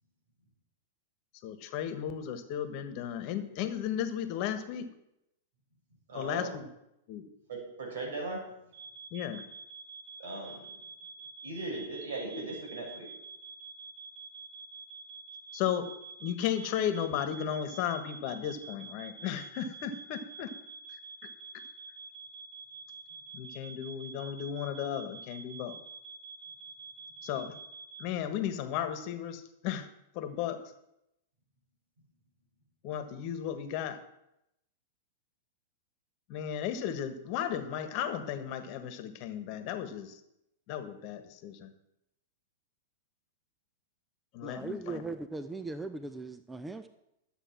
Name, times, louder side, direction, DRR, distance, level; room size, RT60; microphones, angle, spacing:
voice 1, 1.4-4.9 6.1-6.7 7.1-7.2 9.1-9.4 15.5-15.9 16.2-20.5 23.3-25.8 27.2-27.5 28.0-29.9 30.1-30.6 32.8-34.0 36.3-40.1 40.7-41.7 44.3-45.0, left 9 dB, 50° left, 11 dB, 1.4 m, -35 dB
voice 2, 6.1-6.6 7.5-8.4 10.2-10.7 11.4-13.1, right 2 dB, 75° right, 0 dB, 6.1 m, -38 dB
sound 1, 8.7-28.0, right 4 dB, 50° right, 1.5 m, -48 dB
voice 3, 44.4-46.9, right 3 dB, 10° right, 10 dB, 0.6 m, -39 dB
12.5 x 8.0 x 6.1 m, 0.84 s
hypercardioid pair, 110°, 0 cm